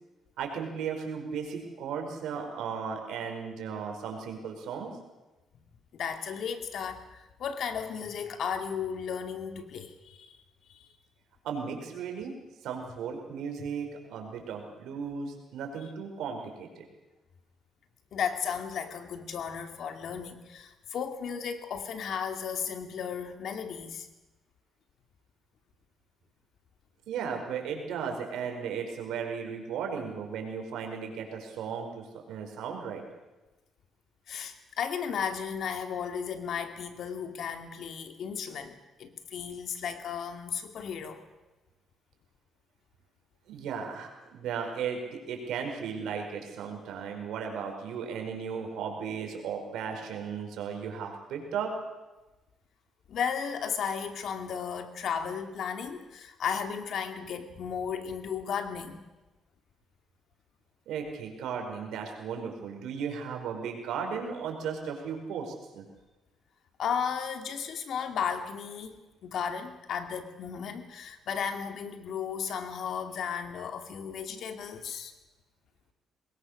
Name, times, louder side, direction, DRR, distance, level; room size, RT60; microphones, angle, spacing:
voice 1, 0.4-5.0 11.4-12.3 12.6-16.9 27.1-33.0 43.5-51.7 60.9-65.8, right 6 dB, 85° right, 3 dB, 4.8 m, -36 dB
voice 2, 5.9-10.4 10.7-10.9 18.1-24.1 34.3-41.2 53.1-59.1 66.8-75.1, left 7 dB, 65° left, 7 dB, 2.5 m, -34 dB
23.0 x 20.5 x 6.6 m, 1.1 s
cardioid pair, 90°, 0 cm